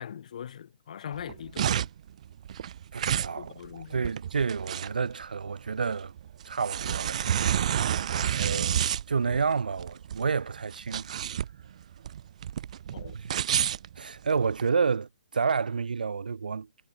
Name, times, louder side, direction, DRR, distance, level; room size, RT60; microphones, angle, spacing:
voice 1, 0.0-1.9 3.3-4.1 12.9-13.2, left 9 dB, 50° left, 2.7 m, -41 dB
sound 1, 1.1-14.7, right 9 dB, 50° right, 1.6 m, -30 dB
voice 2, 2.9-6.1 6.4-8.0 8.3-11.1 13.1-13.4 14.0-16.7, right 5 dB, 65° right, 2.9 m, -30 dB
figure-of-eight pair, 130°, 5 cm